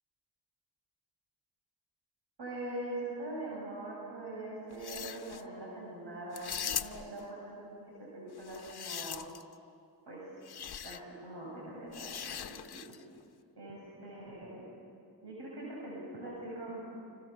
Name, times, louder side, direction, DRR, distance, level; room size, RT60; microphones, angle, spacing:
voice 1, 2.4-9.2 10.1-10.3 10.8-12.9 13.6-14.6 15.2-16.8, right 1 dB, 85° right, -5 dB, 7.6 m, -42 dB
sound 1, 4.7-5.4 6.3-7.2 8.4-9.5 10.4-11.0 11.9-13.0, left 8 dB, 70° left, 0.9 m, -40 dB
29.5 x 26.0 x 7.3 m, 2.4 s
cardioid pair, 75°, 40 cm